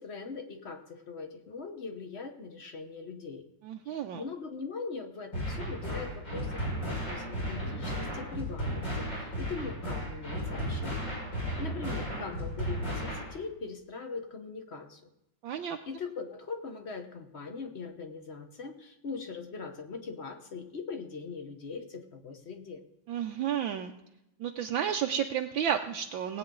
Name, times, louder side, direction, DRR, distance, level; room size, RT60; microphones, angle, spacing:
voice 1, 0.0-3.4 3.8-11.1 11.6-15.1 15.9-22.8, left 4 dB, 40° left, 6 dB, 1.0 m, -41 dB
voice 2, 3.6-4.2 15.4-15.8 23.1-23.9 24.4-26.4, right 9 dB, 70° right, 4 dB, 1.3 m, -31 dB
sound 1, 5.3-13.3, equal, 60° left, 6.2 m, -34 dB
19.0 x 8.8 x 3.8 m, 0.89 s
omnidirectional pair, 2.4 m